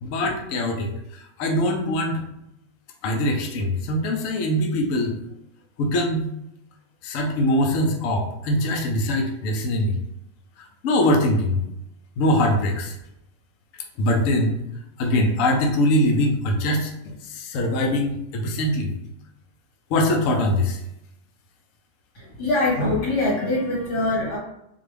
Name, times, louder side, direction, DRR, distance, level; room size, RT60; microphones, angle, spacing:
voice 1, 0.0-2.2 3.0-5.2 5.8-6.3 7.0-9.9 10.8-11.6 12.2-13.0 14.0-14.6 15.0-18.9 19.9-20.8, left 1 dB, 65° left, 2 dB, 0.9 m, -22 dB
voice 2, 22.2-24.4, left 2 dB, 90° left, -6 dB, 2.3 m, -23 dB
3.8 x 2.4 x 3.3 m, 0.82 s
omnidirectional pair, 1.7 m